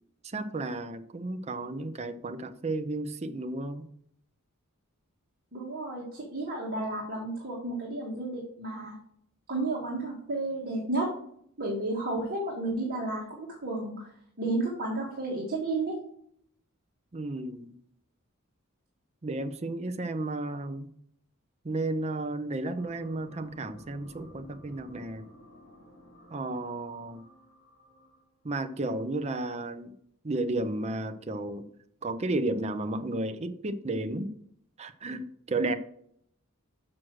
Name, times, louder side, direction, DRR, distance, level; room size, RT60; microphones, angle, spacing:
voice 1, 0.2-3.9 17.1-17.7 19.2-20.9 21.6-25.3 26.3-27.2 28.4-29.9 30.2-31.7 32.0-34.3 34.8-35.8, right 2 dB, 30° right, 8 dB, 0.6 m, -33 dB
voice 2, 5.5-8.9 9.5-11.1 11.6-14.1 14.4-15.9, right 2 dB, 50° right, -3 dB, 1.9 m, -32 dB
sound 1, 22.8-28.4, equal, 65° left, 3.4 m, -53 dB
6.3 x 6.0 x 6.2 m, 0.67 s
head